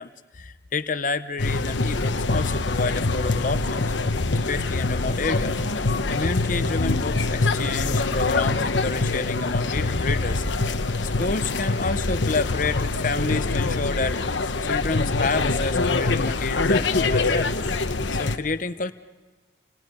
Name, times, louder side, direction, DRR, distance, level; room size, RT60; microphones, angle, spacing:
voice 1, 0.0-3.9 4.5-5.6 6.1-10.4 11.0-17.5 18.1-18.9, left 3 dB, 45° left, 11 dB, 0.8 m, -29 dB
sound 1, 1.4-18.4, left 3 dB, 80° left, 1.1 m, -24 dB
30.0 x 28.5 x 5.5 m, 1.3 s
head